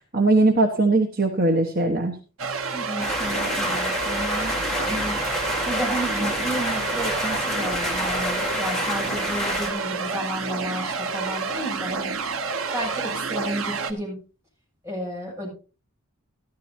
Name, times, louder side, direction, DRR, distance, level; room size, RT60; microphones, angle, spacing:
voice 1, 0.1-2.2, right 2 dB, 45° right, 3 dB, 1.3 m, -20 dB
sound 1, 2.4-13.9, right 5 dB, 75° right, 1.0 m, -29 dB
voice 2, 2.7-12.1 12.7-14.2 14.8-15.5, right 1 dB, 15° right, -3 dB, 7.7 m, -32 dB
sound 2, 3.0-9.7, left 1 dB, 5° left, 2.5 m, -28 dB
13.5 x 13.5 x 2.9 m, 0.35 s
head